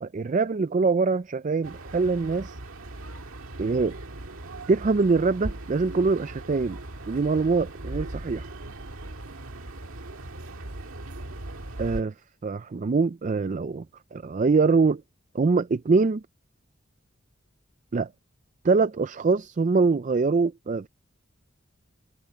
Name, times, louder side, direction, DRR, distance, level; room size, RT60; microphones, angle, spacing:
voice 1, 0.0-2.6 3.6-3.9 4.7-6.8 7.1-8.5 11.8-12.1 12.4-13.8 14.1-15.0 15.3-16.2 17.9-18.1 18.6-20.9, right 4 dB, 35° right, 0.4 m, -23 dB
sound 1, 1.6-12.0, right 1 dB, 90° right, 1.9 m, -39 dB
head